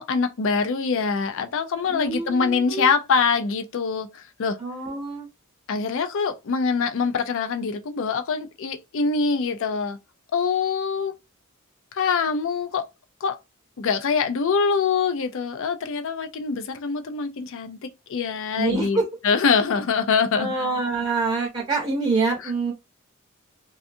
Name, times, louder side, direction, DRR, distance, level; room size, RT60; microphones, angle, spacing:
voice 1, 0.0-4.6 5.7-10.0 10.3-11.1 11.9-12.8 13.2-13.4 13.8-17.8 18.1-20.5, left 5 dB, 60° left, 0.4 m, -24 dB
voice 2, 1.9-2.9 4.6-5.3 18.6-19.0 20.4-22.7, right 3 dB, 25° right, 0.7 m, -26 dB
2.6 x 2.3 x 2.5 m
head